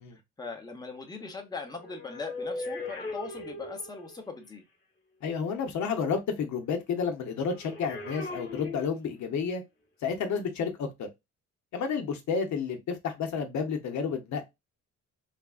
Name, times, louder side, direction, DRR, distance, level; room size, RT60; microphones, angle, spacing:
voice 1, 0.1-4.6, left 4 dB, 15° left, 0.8 m, -40 dB
sound 1, 1.6-4.3 7.4-9.4 10.2-10.4, left 2 dB, 30° left, 1.2 m, -39 dB
voice 2, 5.2-9.6 10.0-11.1 11.7-14.4, left 6 dB, 70° left, 0.8 m, -31 dB
3.3 x 2.4 x 2.3 m
cardioid pair, 90°, 30 cm